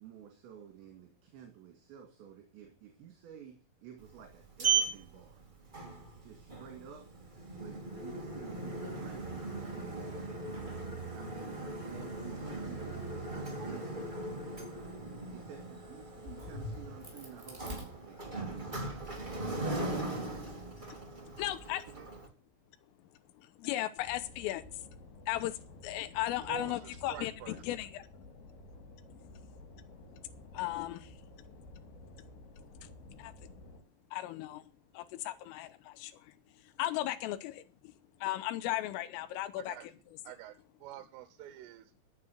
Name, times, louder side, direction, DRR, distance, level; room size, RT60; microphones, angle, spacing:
voice 1, 0.0-5.4 6.2-7.1 7.6-9.4 9.7-10.2 11.1-14.0 15.3-19.0, right 9 dB, 65° right, 4.3 m, -52 dB
Sliding door, 4.0-22.3, right 4 dB, 20° right, 1.3 m, -38 dB
Crack, 16.0-18.6 19.1-20.8, left 3 dB, 5° right, 6.3 m, -50 dB
voice 2, 21.4-21.8 23.6-24.7 25.3-28.0 30.5-31.1 33.2-33.3 34.1-34.6 34.9-36.1 36.8-37.9 38.2-39.8, left 15 dB, 85° left, 3.4 m, -36 dB
sound 1, 24.0-33.8, left 2 dB, 55° left, 4.0 m, -53 dB
voice 3, 26.4-27.6 39.6-39.9 40.3-40.5 40.8-41.9, right 14 dB, 80° right, 3.3 m, -47 dB
13.5 x 7.6 x 7.9 m
omnidirectional pair, 5.9 m